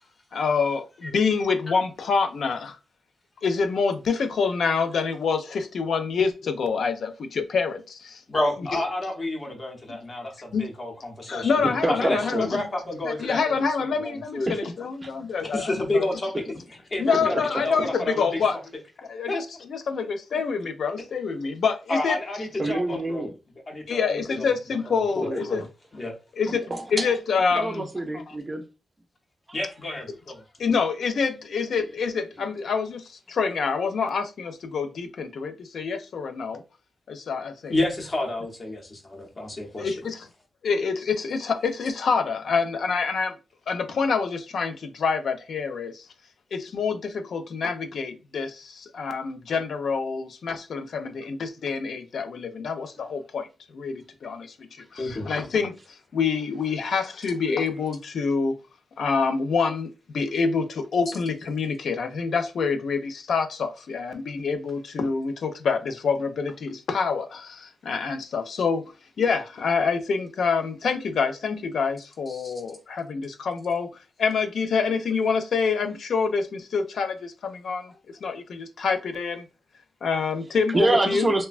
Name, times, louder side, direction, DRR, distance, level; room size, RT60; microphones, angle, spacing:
voice 1, 0.3-2.8 3.4-8.2 10.5-10.7 11.3-12.6 13.0-16.1 17.0-18.6 19.1-22.2 23.9-25.7 26.4-26.7 26.9-27.8 30.6-36.6 37.1-37.8 39.8-40.2 40.6-43.3 43.7-46.0 46.5-53.5 53.7-54.5 54.9-55.7 56.1-58.6 59.0-68.9 69.2-73.9 74.2-77.9 78.2-79.4 80.0-81.3, left 5 dB, 65° left, 0.4 m, -26 dB
voice 2, 8.3-11.5 12.0-14.5 15.4-16.5 16.9-18.4 19.3-19.4 21.9-23.3 23.7-24.5 24.8-25.6 25.9-26.1 29.5-30.4 34.0-34.1 37.7-39.9 55.0-55.3 72.3-72.5, left 2 dB, 30° left, 0.6 m, -30 dB
voice 3, 11.6-12.5 14.5-14.7 15.0-15.1 17.1-17.6 22.6-23.3 25.2-25.4 26.7-27.1 27.5-28.6 80.7-81.5, right 2 dB, 20° right, 0.4 m, -26 dB
3.2 x 2.1 x 2.4 m
wide cardioid pair, 175°, 0 cm